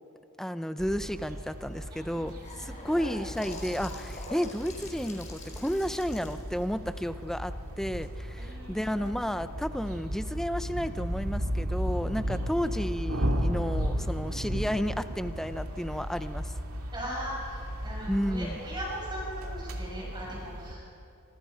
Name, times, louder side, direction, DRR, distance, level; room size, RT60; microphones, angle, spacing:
voice 1, 0.4-16.5 18.1-18.6, equal, ahead, 10 dB, 0.7 m, -32 dB
sound 1, 0.8-20.7, equal, 75° right, 2.5 m, -35 dB
voice 2, 1.9-3.0 8.4-9.5 12.2-12.7 16.9-20.9, equal, 20° right, -4 dB, 6.8 m, -40 dB
Gurgling / Sink (filling or washing) / Bathtub (filling or washing), 2.0-8.1, left 1 dB, 35° left, 4.5 m, -45 dB
26.0 x 25.5 x 5.2 m, 2.8 s
head